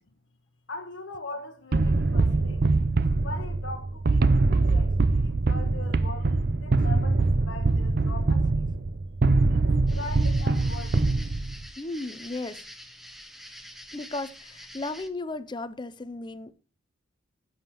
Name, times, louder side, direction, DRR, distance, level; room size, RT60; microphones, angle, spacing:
voice 1, 0.7-2.7 3.2-8.7 9.5-11.2, left 2 dB, 65° left, 0.9 m, -41 dB
sound 1, 1.7-11.7, right 3 dB, 45° right, 0.5 m, -23 dB
sound 2, 9.9-15.1, equal, ahead, 0.8 m, -46 dB
voice 2, 11.8-12.6 13.9-16.5, left 2 dB, 20° left, 0.5 m, -35 dB
14.5 x 7.2 x 3.0 m
head